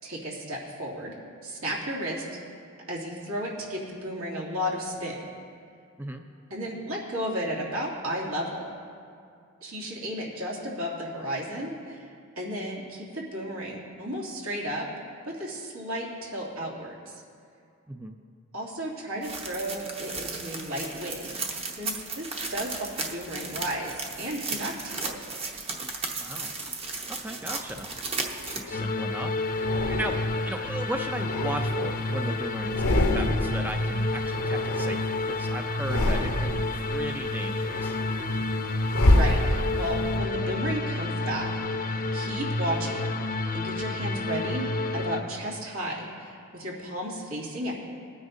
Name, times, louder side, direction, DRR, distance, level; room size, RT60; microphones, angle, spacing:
voice 1, 0.0-1.2 1.4-2.3 2.9-5.2 6.5-8.7 9.6-12.1 12.4-14.9 15.2-17.2 18.5-23.9 24.2-25.2 39.1-44.7 44.9-47.7, equal, 80° right, -5 dB, 2.6 m, -33 dB
voice 2, 17.9-18.2 26.2-26.5 27.1-28.1 28.4-38.0, right 1 dB, 10° right, 4 dB, 0.4 m, -37 dB
sound 1, 19.2-28.6, right 3 dB, 30° right, 0.9 m, -35 dB
sound 2, 27.7-28.9 29.6-30.5 31.0-32.3 32.6-33.7 33.9-35.3 35.7-36.8 37.2-40.0, left 1 dB, 85° left, 1.0 m, -27 dB
sound 3, 28.7-45.2, left 2 dB, 40° left, 0.6 m, -29 dB
19.5 x 9.6 x 2.7 m, 2.3 s
head